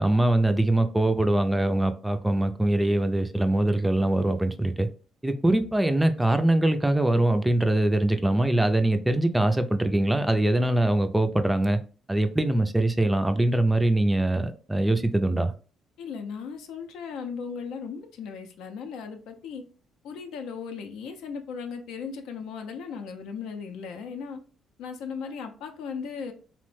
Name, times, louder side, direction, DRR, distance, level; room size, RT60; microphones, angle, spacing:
voice 1, 0.0-4.9 5.2-11.8 12.1-15.5, right 1 dB, 10° right, 0.3 m, -23 dB
voice 2, 16.0-19.6 20.0-24.4 24.8-26.3, left 6 dB, 85° left, 0.5 m, -37 dB
2.9 x 2.1 x 3.1 m
cardioid pair, 90°, 0 cm